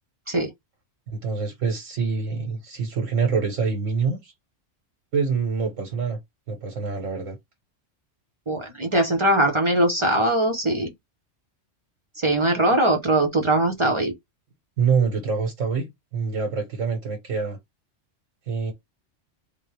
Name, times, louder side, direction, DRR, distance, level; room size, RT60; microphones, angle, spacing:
voice 1, 1.1-4.3 5.1-6.2 6.5-7.4 14.8-17.6 18.5-18.7, right 5 dB, 90° right, 1.4 m, -25 dB
voice 2, 8.5-10.9 12.2-14.1, right 1 dB, 30° right, 0.6 m, -21 dB
3.7 x 2.1 x 3.1 m
omnidirectional pair, 1.3 m